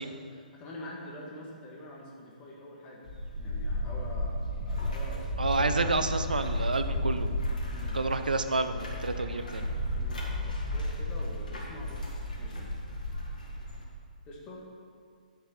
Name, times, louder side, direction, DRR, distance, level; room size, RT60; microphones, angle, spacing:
voice 1, 0.3-3.1 3.3-6.0 7.7-8.0 9.9-12.1 12.4-12.7 14.3-14.6, left 1 dB, 20° left, -3 dB, 1.7 m, -45 dB
sound 1, 3.1-13.9, left 1 dB, 65° left, 2.2 m, -33 dB
voice 2, 5.4-7.3 7.9-9.6, right 3 dB, 70° right, 9 dB, 0.6 m, -29 dB
10.0 x 7.6 x 4.4 m, 2.1 s
figure-of-eight pair, 125°, 5 cm